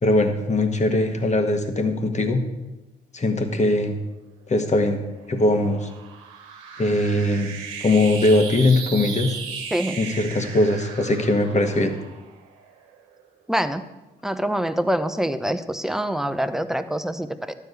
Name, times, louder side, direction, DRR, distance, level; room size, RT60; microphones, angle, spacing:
voice 1, 0.0-2.4 3.1-4.0 4.5-5.0 5.3-5.9 6.8-7.5 7.8-9.4 10.0-11.9, left 2 dB, 35° left, 6 dB, 1.7 m, -20 dB
sound 1, 4.6-13.3, right 6 dB, 80° right, 1.2 m, -37 dB
voice 2, 13.5-13.8 14.2-17.5, equal, ahead, 10 dB, 0.9 m, -25 dB
12.0 x 4.9 x 8.2 m, 1.1 s
hypercardioid pair, 45°, 20 cm